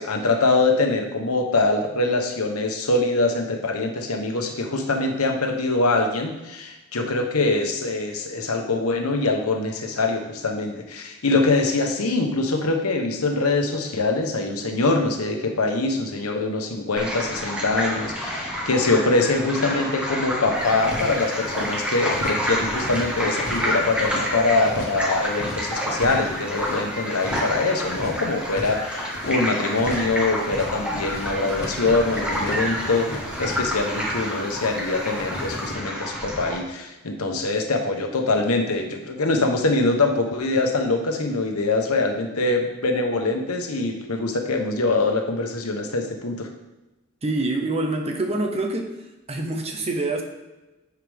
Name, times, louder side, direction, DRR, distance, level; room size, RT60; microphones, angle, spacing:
voice 1, 0.0-46.5, left 3 dB, 85° left, 3 dB, 1.0 m, -23 dB
sound 1, 17.0-36.6, equal, 5° right, 1.5 m, -29 dB
sound 2, 20.6-21.7 22.1-22.5 22.7-24.3 24.6-25.0 25.3-26.8 27.2-27.6 27.8-29.4 29.7-30.1 30.4-30.8 31.0-34.7 35.0-35.7, left 1 dB, 50° left, 1.6 m, -36 dB
voice 2, 47.2-48.9 49.3-50.2, right 2 dB, 30° right, 4 dB, 0.9 m, -25 dB
9.7 x 4.8 x 3.5 m, 1.0 s
head